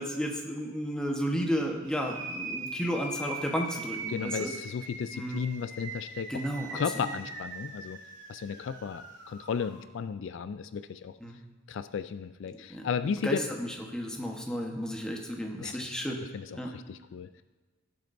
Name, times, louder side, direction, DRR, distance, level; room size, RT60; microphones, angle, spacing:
voice 1, 0.0-4.5 5.1-5.4 6.3-7.1 11.2-11.4 12.7-16.2 16.5-16.7, equal, 5° left, 0 dB, 1.1 m, -33 dB
sound 1, 1.8-9.8, right 3 dB, 75° right, 2.5 m, -41 dB
voice 2, 4.1-6.4 6.7-8.0 8.3-11.1 11.7-13.4 15.6-16.1 16.3-17.4, left 6 dB, 65° left, 12 dB, 0.3 m, -34 dB
16.5 x 7.6 x 2.6 m, 1.3 s
head